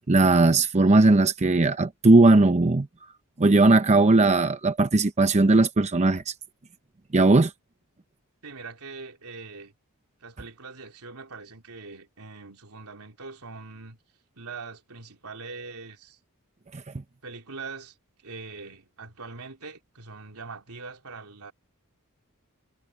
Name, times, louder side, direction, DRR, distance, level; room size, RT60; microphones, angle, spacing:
voice 1, 0.1-2.9 3.4-6.3 7.1-7.5 16.7-16.8, right 2 dB, 30° right, 0.7 m, -18 dB
voice 2, 8.4-9.7 10.2-14.0 14.4-16.2 17.2-21.5, right 4 dB, 80° right, 3.5 m, -42 dB
head